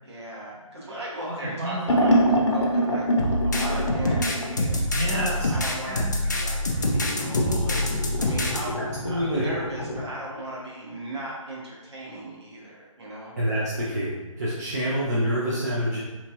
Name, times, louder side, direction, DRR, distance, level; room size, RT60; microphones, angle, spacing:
voice 1, 0.0-8.8 9.0-13.3, right 1 dB, 50° right, -5 dB, 1.2 m, -37 dB
sound 1, 1.9-4.6 6.9-10.0, equal, 55° left, 0.7 m, -25 dB
sound 2, 3.2-8.6, left 1 dB, 30° left, 0.4 m, -26 dB
voice 2, 4.9-5.5 5.8-6.1 9.0-9.5 13.4-14.1 14.4-16.0, equal, 30° right, -7 dB, 0.5 m, -27 dB
3.5 x 2.9 x 2.9 m, 1.2 s
figure-of-eight pair, 165°, 18 cm